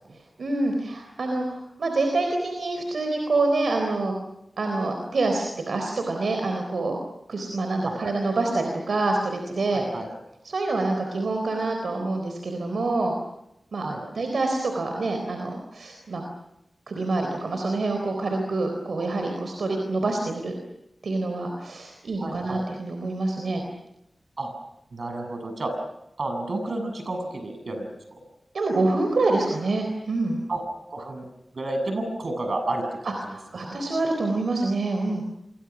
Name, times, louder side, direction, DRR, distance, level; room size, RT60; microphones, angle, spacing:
voice 1, 0.4-4.1 4.6-7.0 7.3-9.8 10.4-13.1 13.7-16.2 16.9-20.5 21.0-23.6 28.5-30.4 33.0-35.2, right 2 dB, 85° right, 4 dB, 3.9 m, -26 dB
voice 2, 9.7-10.1 13.8-14.0 22.2-22.7 24.4-24.5 24.9-25.7 26.2-28.2 30.5-30.6 30.9-31.3 31.5-33.2 33.6-33.7, right 2 dB, 65° right, 6 dB, 7.4 m, -31 dB
29.5 x 24.0 x 6.2 m, 0.83 s
wide cardioid pair, 65°, 0 cm